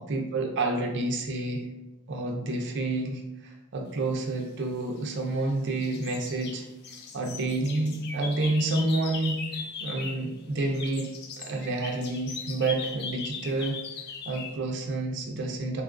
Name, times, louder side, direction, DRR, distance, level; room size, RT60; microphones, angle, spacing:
voice 1, 0.0-1.7 2.1-6.6 7.1-11.1 11.4-13.8 14.3-15.8, right 2 dB, 55° right, 2 dB, 0.5 m, -29 dB
sound 1, 4.7-5.5 5.8-10.3 10.6-14.6, left 5 dB, 50° left, 0.3 m, -39 dB
3.7 x 2.4 x 2.4 m, 0.98 s
head